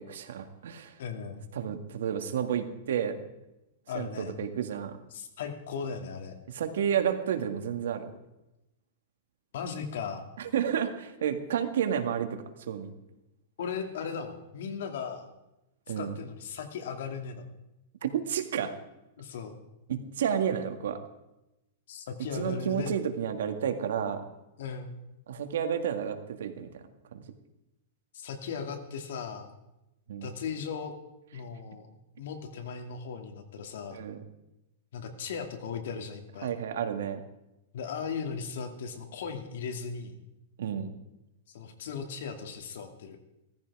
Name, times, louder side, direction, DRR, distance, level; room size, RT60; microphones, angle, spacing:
voice 1, 0.0-0.9 1.5-3.2 3.9-5.0 6.5-8.1 10.4-12.9 15.9-16.2 18.0-18.7 19.9-21.0 22.3-24.2 25.3-26.8 27.1-27.2 30.1-30.3 33.9-34.2 36.4-37.2 40.6-40.9, right 8 dB, 85° right, 7 dB, 2.0 m, -31 dB
voice 2, 1.0-1.5 3.9-4.4 5.1-6.4 9.5-10.2 13.6-15.3 16.0-17.4 19.2-19.6 21.9-22.9 24.6-25.0 28.1-29.5 30.2-30.9 31.3-31.9 32.2-34.0 34.9-36.5 37.7-40.2 41.5-43.2, left 6 dB, 70° left, 5 dB, 2.5 m, -37 dB
17.0 x 14.5 x 4.9 m, 0.93 s
supercardioid pair, 165°, 0 cm